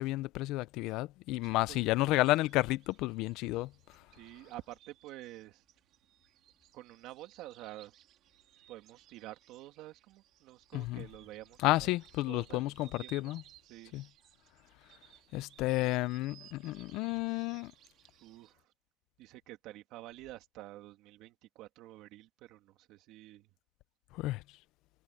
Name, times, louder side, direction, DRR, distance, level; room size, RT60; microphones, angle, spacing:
voice 1, 0.0-3.7 10.7-11.1 11.6-13.4 13.9-14.0 15.3-17.7 24.1-24.4, left 18 dB, 85° left, 0.5 m, -31 dB
voice 2, 1.4-1.8 4.1-5.6 6.7-7.9 8.7-11.9 12.3-13.3 13.7-14.0 18.2-18.6 19.2-23.5, right 16 dB, 80° right, 2.3 m, -49 dB
sound 1, 1.6-18.5, right 12 dB, 60° right, 2.2 m, -61 dB
cardioid pair, 165°, 0 cm